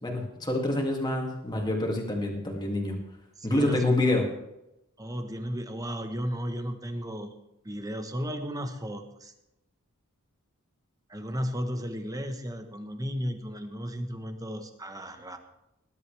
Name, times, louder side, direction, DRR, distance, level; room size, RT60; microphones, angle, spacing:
voice 1, 0.0-2.9 3.4-4.2, left 1 dB, 20° left, 0 dB, 2.4 m, -27 dB
voice 2, 3.4-4.0 5.0-7.3 7.6-9.3 11.1-15.4, equal, 15° right, 7 dB, 1.2 m, -34 dB
19.5 x 11.0 x 3.4 m, 0.90 s
head